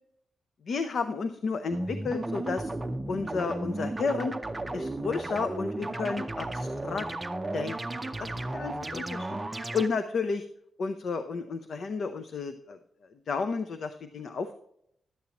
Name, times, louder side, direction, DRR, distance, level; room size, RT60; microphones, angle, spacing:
voice 1, 0.7-2.7 3.1-4.3 4.7-7.1 7.5-7.8 8.2-9.3 9.7-10.5 10.8-12.8 13.3-14.5, left 4 dB, 60° left, 8 dB, 0.6 m, -32 dB
sound 1, 1.7-9.9, right 2 dB, 15° right, 0.6 m, -34 dB
11.5 x 8.4 x 2.9 m, 0.70 s
wide cardioid pair, 140°, 0 cm